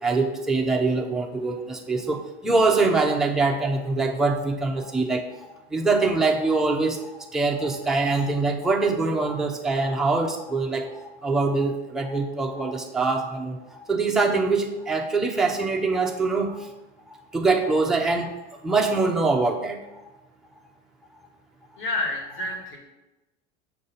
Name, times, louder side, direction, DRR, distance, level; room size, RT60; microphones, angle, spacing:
voice 1, 0.0-16.7 17.1-18.4 18.6-19.8 22.4-22.5, right 3 dB, ahead, 1 dB, 0.5 m, -24 dB
voice 2, 21.8-22.8, left 2 dB, 35° left, 1 dB, 1.6 m, -29 dB
6.6 x 2.6 x 5.5 m, 1.0 s
hypercardioid pair, 100°, 36 cm